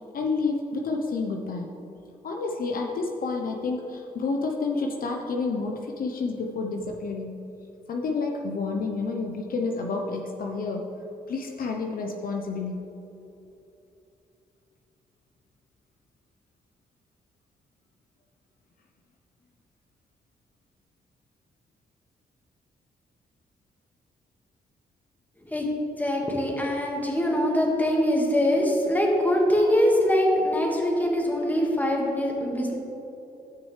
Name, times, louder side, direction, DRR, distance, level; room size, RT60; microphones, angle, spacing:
voice 1, 0.1-1.7 2.2-7.4 7.9-10.9 11.3-12.9, left 4 dB, 65° left, 2 dB, 0.8 m, -29 dB
voice 2, 26.0-32.8, equal, 10° left, -1 dB, 1.8 m, -23 dB
13.0 x 6.1 x 3.3 m, 2.8 s
cardioid pair, 75°, 16 cm